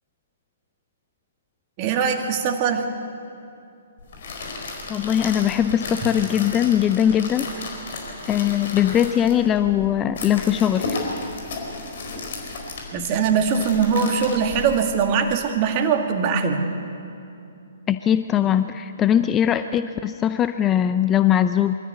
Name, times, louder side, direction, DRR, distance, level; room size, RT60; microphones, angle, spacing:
voice 1, 1.8-2.9 12.9-16.7, right 6 dB, 35° right, 5 dB, 2.0 m, -21 dB
sound 1, 4.0-15.3, left 3 dB, 60° left, 4.6 m, -34 dB
voice 2, 4.9-7.5 8.3-11.0 17.9-21.7, left 10 dB, 20° left, 11 dB, 0.5 m, -20 dB
23.5 x 13.5 x 8.3 m, 2.7 s
hypercardioid pair, 130°, 0 cm